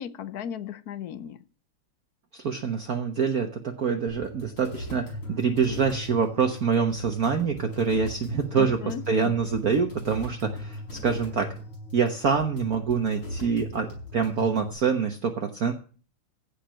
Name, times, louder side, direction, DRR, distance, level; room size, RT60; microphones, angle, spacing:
voice 1, 0.0-1.4 8.5-9.6, left 9 dB, 60° left, 1.1 m, -36 dB
voice 2, 2.3-11.5 11.9-15.7, right 6 dB, 50° right, 1.4 m, -26 dB
sound 1, 4.1-14.7, left 1 dB, 80° left, 6.5 m, -38 dB
15.5 x 5.4 x 9.0 m
omnidirectional pair, 2.3 m